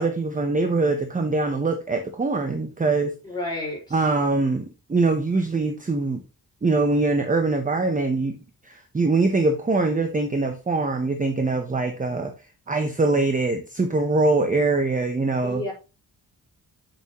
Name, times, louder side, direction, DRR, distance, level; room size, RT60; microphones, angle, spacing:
voice 1, 0.0-3.2 3.9-6.2 6.6-8.4 8.6-12.3 12.7-15.6, right 3 dB, 20° right, 6 dB, 0.9 m, -23 dB
voice 2, 3.2-4.0 15.4-15.7, left 1 dB, 10° left, -4 dB, 4.9 m, -31 dB
8.2 x 7.3 x 3.0 m, 0.30 s
wide cardioid pair, 165°, 37 cm